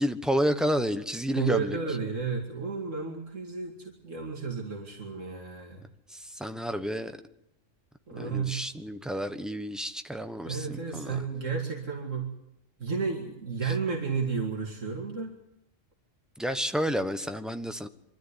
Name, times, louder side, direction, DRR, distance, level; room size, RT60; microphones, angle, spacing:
voice 1, 0.0-1.8 6.1-7.2 8.2-11.2 13.6-13.7 16.4-17.9, equal, ahead, 8 dB, 0.9 m, -30 dB
voice 2, 1.3-5.8 8.1-8.6 10.4-12.3 12.8-15.3, right 5 dB, 75° right, 0 dB, 2.7 m, -32 dB
24.0 x 13.5 x 9.9 m, 0.82 s
omnidirectional pair, 1.3 m